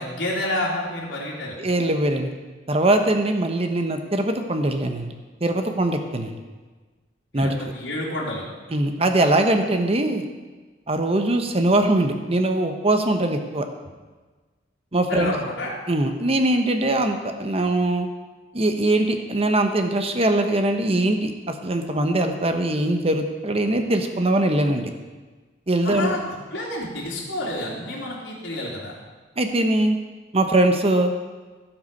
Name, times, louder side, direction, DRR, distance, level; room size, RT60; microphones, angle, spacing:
voice 1, 0.0-1.6 7.3-8.5 15.1-15.7 25.8-26.2 26.5-28.9, left 1 dB, 75° left, -7 dB, 2.9 m, -29 dB
voice 2, 1.6-2.3 2.7-5.1 5.4-6.3 7.3-7.6 8.7-10.2 10.9-13.7 14.9-15.3 15.9-18.1 18.5-24.9 25.7-26.2 29.4-30.0 30.3-31.1, right 1 dB, 35° right, 6 dB, 1.0 m, -21 dB
16.5 x 6.0 x 5.3 m, 1.3 s
head